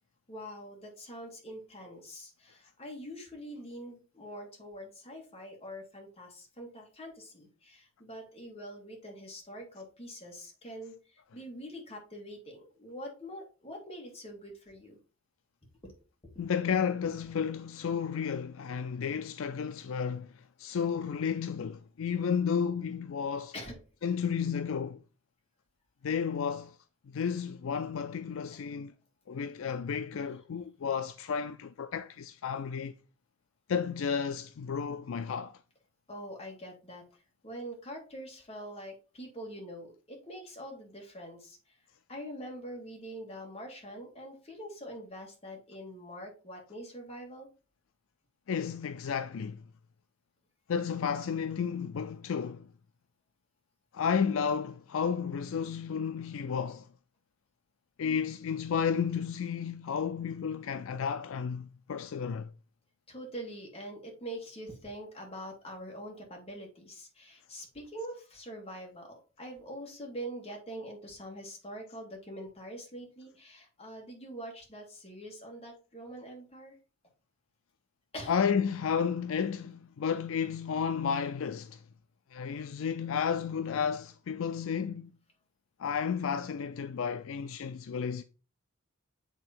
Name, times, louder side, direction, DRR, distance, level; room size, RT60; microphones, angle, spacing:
voice 1, 0.3-15.0 15.8-15.9 23.5-23.8 30.1-30.3 36.1-37.0 37.4-41.8 42.1-47.5 63.1-76.8 78.1-78.3, equal, 30° left, 2.4 m, -44 dB
voice 2, 16.4-23.5 24.0-25.0 26.0-26.8 27.1-28.9 29.3-32.9 33.7-35.6 48.5-49.6 50.7-52.7 53.9-56.9 58.0-62.5 78.3-81.8 82.3-85.1 85.8-88.2, left 6 dB, 65° left, 0.4 m, -32 dB
8.3 x 3.8 x 4.3 m
head